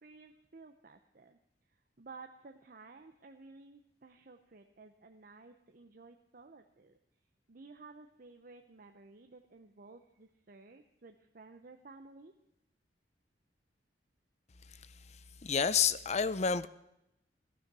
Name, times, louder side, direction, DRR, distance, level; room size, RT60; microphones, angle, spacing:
voice 1, 0.0-1.4 2.0-7.0 7.5-12.3, right 3 dB, 50° right, 6 dB, 0.7 m, -54 dB
voice 2, 15.4-16.7, left 6 dB, 40° left, 15 dB, 0.6 m, -29 dB
18.0 x 12.0 x 6.1 m, 0.86 s
head